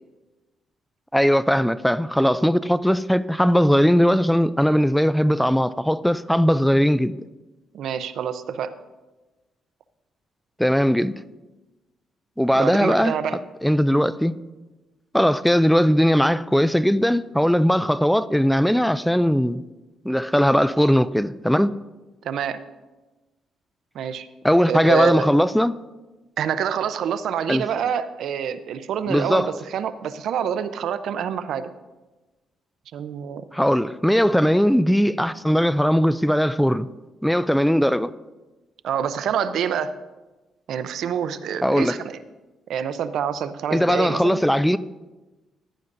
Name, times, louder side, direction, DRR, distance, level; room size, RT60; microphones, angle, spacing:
voice 1, 1.1-7.2 10.6-11.2 12.4-13.2 13.6-14.4 15.1-19.6 20.1-21.8 24.4-25.8 27.5-27.6 29.1-29.5 33.5-36.9 37.2-38.1 41.6-42.0 43.7-44.8, equal, ahead, 0.3 m, -19 dB
voice 2, 7.7-8.7 12.5-13.4 22.2-22.6 23.9-24.3 24.7-25.3 26.4-31.7 32.9-33.4 38.8-39.9 40.7-42.2 42.7-44.4, right 8 dB, 75° right, 0.6 m, -26 dB
15.0 x 11.0 x 2.6 m
cardioid pair, 90°, 0 cm